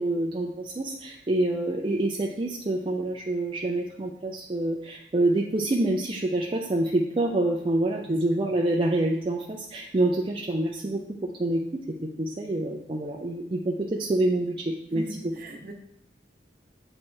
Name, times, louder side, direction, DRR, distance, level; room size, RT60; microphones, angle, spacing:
voice 1, 0.0-15.0, right 1 dB, 30° right, -1 dB, 0.5 m, -27 dB
voice 2, 14.9-15.7, equal, 50° right, 2 dB, 1.0 m, -39 dB
8.4 x 3.3 x 4.4 m, 0.75 s
head